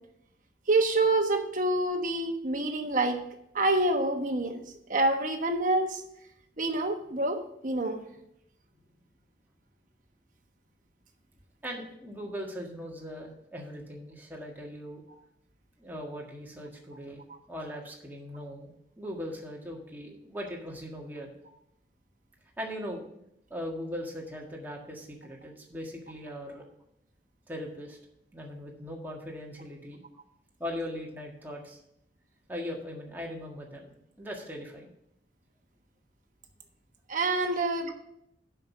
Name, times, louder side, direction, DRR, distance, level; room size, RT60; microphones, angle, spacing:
voice 1, 0.7-3.2 3.5-4.6 4.9-6.0 6.6-8.0 37.1-37.9, right 2 dB, 45° right, 5 dB, 1.2 m, -27 dB
voice 2, 11.6-15.0 15.8-18.7 19.0-21.4 22.6-23.1 23.5-26.7 27.5-28.0 28.3-30.0 30.6-31.8 32.5-33.9 34.2-34.9, equal, 10° right, -1 dB, 1.7 m, -39 dB
7.3 x 6.1 x 7.3 m, 0.77 s
head